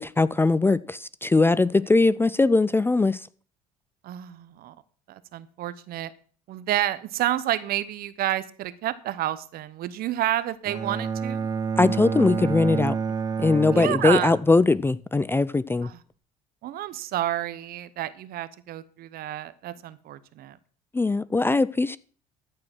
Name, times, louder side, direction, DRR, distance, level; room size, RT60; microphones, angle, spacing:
voice 1, 0.0-3.3 11.8-13.0 13.4-15.9 20.9-22.0, left 3 dB, 15° left, 0.4 m, -21 dB
voice 2, 4.0-4.8 5.1-6.1 6.5-11.5 13.7-14.3 15.8-16.0 16.6-20.6, right 13 dB, 60° right, 1.0 m, -29 dB
Bowed string instrument, 10.7-14.7, right 5 dB, 20° right, 1.5 m, -29 dB
14.0 x 4.8 x 6.1 m
supercardioid pair, 80°, 17 cm